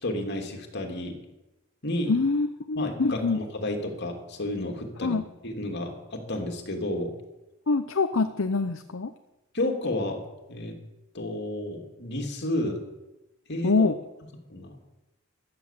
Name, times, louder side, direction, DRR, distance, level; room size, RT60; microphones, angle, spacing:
voice 1, 0.0-1.2 1.8-2.1 2.7-7.1 9.5-10.2 10.5-10.8 11.1-12.8 13.5-13.8 14.5-14.8, left 1 dB, 55° left, 3 dB, 2.9 m, -31 dB
voice 2, 2.1-3.4 5.0-5.2 7.7-9.1 13.6-14.0, left 3 dB, 70° left, 9 dB, 0.8 m, -25 dB
15.5 x 11.5 x 7.5 m, 1.0 s
head